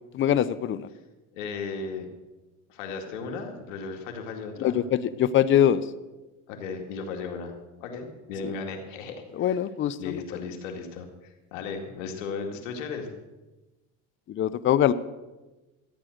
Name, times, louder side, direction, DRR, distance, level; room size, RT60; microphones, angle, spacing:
voice 1, 0.1-0.9 4.6-5.8 8.4-8.5 9.4-10.2 14.3-14.9, left 10 dB, 35° left, 15 dB, 0.6 m, -23 dB
voice 2, 1.3-2.1 2.7-4.8 6.5-7.5 7.8-9.6 10.0-13.1, left 4 dB, 90° left, 3 dB, 2.3 m, -36 dB
13.5 x 9.0 x 6.5 m, 1.1 s
supercardioid pair, 110°, 37 cm